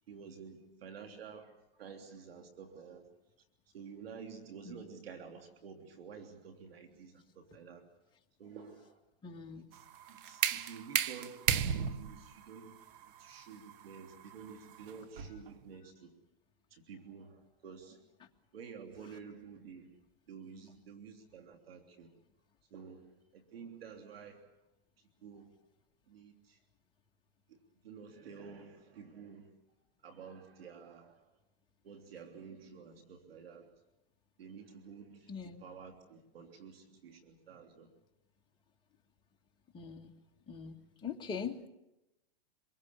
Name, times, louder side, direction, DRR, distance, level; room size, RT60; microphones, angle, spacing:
voice 1, 0.1-1.5 1.8-3.1 3.7-7.8 8.4-9.0 9.5-12.8 13.0-16.2 16.7-18.0 18.5-19.9 20.3-22.1 22.7-24.5 25.2-25.5 26.1-26.6 27.5-27.6 27.8-29.6 30.0-31.2 31.8-33.7 34.4-37.9, right 6 dB, 85° right, 5 dB, 3.3 m, -51 dB
voice 2, 9.2-9.7 35.3-35.6 39.7-40.1 40.5-40.8 41.0-41.7, left 6 dB, 15° left, 1 dB, 2.0 m, -42 dB
sound 1, 9.7-15.5, right 9 dB, 65° right, 1.5 m, -35 dB
26.0 x 22.5 x 7.1 m, 0.93 s
hypercardioid pair, 145°, 29 cm